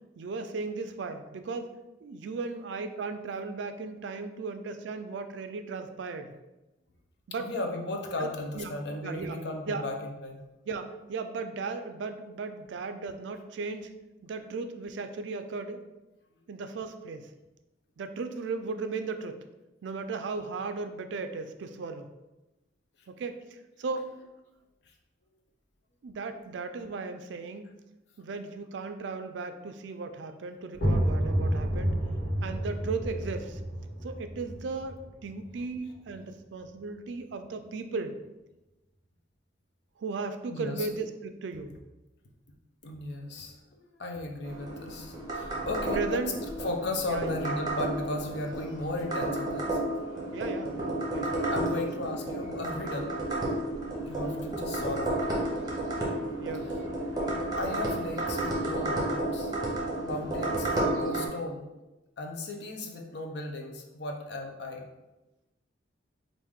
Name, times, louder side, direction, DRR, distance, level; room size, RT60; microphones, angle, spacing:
voice 1, 0.2-1.7 2.0-6.3 7.3-7.5 8.2-8.7 9.0-9.4 9.7-9.9 10.6-13.9 14.2-15.8 16.5-17.3 18.0-19.4 19.8-22.1 23.1-24.1 26.0-27.7 28.2-31.9 32.4-33.6 34.0-38.2 40.0-41.8 45.9-46.4 47.1-47.4 50.3-51.4 51.7-51.9 54.2-54.5 56.4-56.7, right 4 dB, 70° right, 8 dB, 0.4 m, -36 dB
voice 2, 7.4-10.4 40.5-40.9 42.8-46.2 46.6-49.8 51.5-53.2 54.0-55.2 57.6-59.5 60.0-61.7 62.2-64.9, left 2 dB, 60° left, 2 dB, 0.6 m, -36 dB
sound 1, 30.7-36.3, right 1 dB, 75° left, 1.4 m, -30 dB
sound 2, 44.4-61.3, right 1 dB, 20° right, 0.8 m, -32 dB
4.7 x 2.6 x 3.5 m, 1.0 s
head